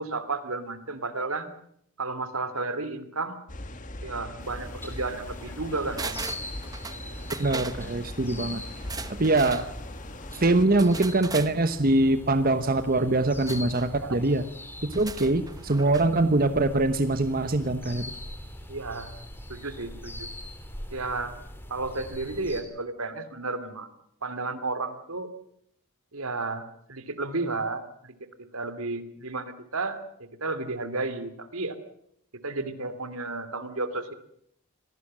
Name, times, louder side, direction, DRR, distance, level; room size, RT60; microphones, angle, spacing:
voice 1, 0.0-1.5 2.0-3.4 4.0-6.1 13.9-14.2 18.7-19.1 19.5-20.3 20.9-21.4 21.7-23.9 24.2-25.3 26.1-28.1 28.5-30.0 30.4-31.8 32.4-34.1, right 3 dB, 75° right, 12 dB, 2.7 m, -32 dB
sound 1, 3.5-10.7, left 1 dB, 35° left, 1.8 m, -40 dB
sound 2, 4.4-22.6, left 1 dB, 10° left, 3.4 m, -42 dB
sound 3, 6.0-7.0 7.3-7.8 8.8-9.7 10.8-11.5 13.5-13.9 14.9-16.1 16.4-16.5, right 4 dB, 15° right, 1.0 m, -38 dB
voice 2, 7.4-8.6 9.2-9.7 10.3-14.4 14.9-18.0, right 2 dB, 40° right, 10 dB, 1.1 m, -23 dB
26.5 x 18.5 x 7.6 m, 0.71 s
head